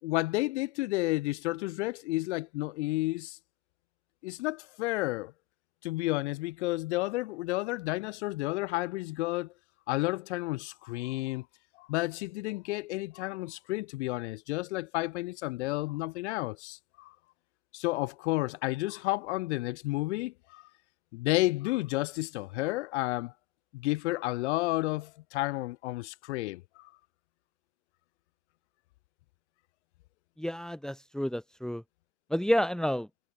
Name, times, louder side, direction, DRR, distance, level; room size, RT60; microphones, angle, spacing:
voice 1, 0.0-3.4 4.2-5.3 5.8-9.5 9.9-11.5 11.8-17.1 17.7-20.7 21.1-23.3 23.7-26.9, left 20 dB, 60° left, 7.8 m, -31 dB
voice 2, 30.4-31.8 32.3-33.1, equal, ahead, 4.2 m, -29 dB
figure-of-eight pair, 75°, 38 cm